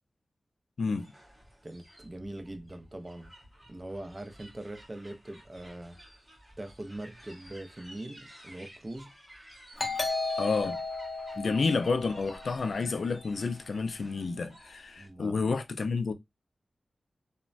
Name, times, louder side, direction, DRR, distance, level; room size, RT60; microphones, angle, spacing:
voice 1, 0.8-1.1 10.4-10.8 11.4-16.1, left 4 dB, 70° left, 0.3 m, -30 dB
sound 1, 1.0-15.1, equal, 5° right, 1.7 m, -54 dB
voice 2, 1.6-3.3 3.7-6.0 6.6-9.1 11.3-11.6 15.0-15.5, right 1 dB, 25° right, 0.5 m, -42 dB
Doorbell, 9.8-13.1, left 3 dB, 35° left, 0.8 m, -35 dB
3.0 x 2.1 x 2.5 m
wide cardioid pair, 95°, 0 cm